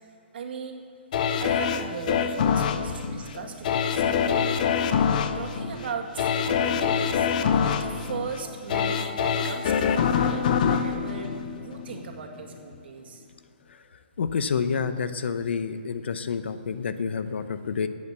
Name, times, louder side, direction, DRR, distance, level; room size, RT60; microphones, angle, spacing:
voice 1, 0.3-0.8 1.4-4.5 5.3-13.2, right 6 dB, 65° right, 3 dB, 2.1 m, -38 dB
sound 1, 1.1-12.1 12.5-12.6, left 7 dB, 45° left, 0.8 m, -25 dB
voice 2, 14.2-17.9, left 6 dB, 75° left, 11 dB, 0.9 m, -28 dB
12.5 x 8.7 x 8.1 m, 2.5 s
hypercardioid pair, 160°, 6 cm